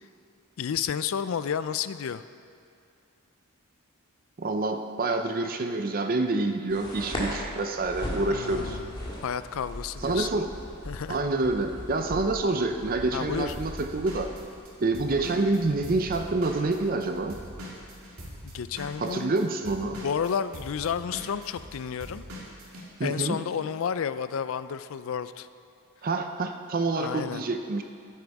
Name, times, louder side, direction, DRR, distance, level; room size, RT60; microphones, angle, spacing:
voice 1, 0.6-2.2 8.3-8.9 9.2-10.3 10.9-11.2 13.1-13.5 18.4-19.4 20.0-22.2 23.0-25.5 26.9-27.4, left 7 dB, 65° left, 14 dB, 0.4 m, -31 dB
voice 2, 4.4-8.8 10.0-10.5 11.1-14.3 14.8-17.3 19.0-20.0 23.0-23.4 26.0-27.8, right 2 dB, 40° right, 6 dB, 0.6 m, -27 dB
sound 1, 6.7-20.2, equal, 20° left, 1.9 m, -40 dB
Drum kit / Drum, 13.5-17.0 17.3-22.8, equal, 75° right, 2.3 m, -42 dB
13.0 x 8.5 x 4.7 m, 2.5 s
head